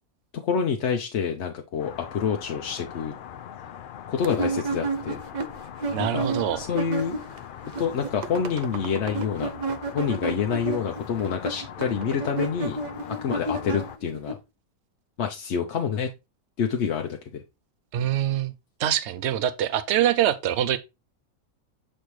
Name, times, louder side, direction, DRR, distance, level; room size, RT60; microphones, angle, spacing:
voice 1, 0.4-3.1 4.1-5.2 6.0-6.3 6.6-7.2 7.8-9.5 9.9-12.8 13.2-14.4 15.2-16.1 16.6-17.4, left 7 dB, 60° left, 0.9 m, -27 dB
sound 1, 1.8-14.0, left 9 dB, 85° left, 0.4 m, -41 dB
sound 2, 4.2-7.4 7.6-14.3, right 3 dB, 85° right, 0.4 m, -31 dB
voice 2, 5.9-6.6 17.9-18.5 18.8-20.8, right 11 dB, 60° right, 0.9 m, -24 dB
6.9 x 4.3 x 3.1 m
omnidirectional pair, 1.5 m